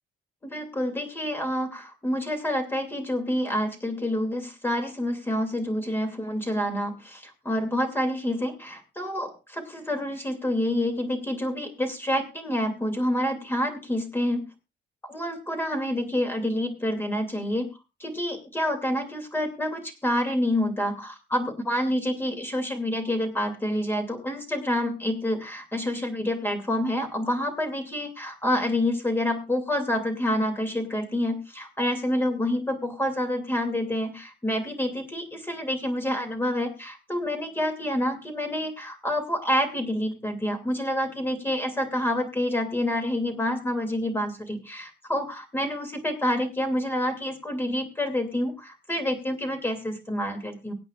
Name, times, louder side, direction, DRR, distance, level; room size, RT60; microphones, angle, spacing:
voice 1, 0.4-14.4 15.0-17.7 18.0-50.7, left 1 dB, 10° left, 5 dB, 2.7 m, -28 dB
24.5 x 8.8 x 2.5 m, 0.28 s
cardioid pair, 155°, 18 cm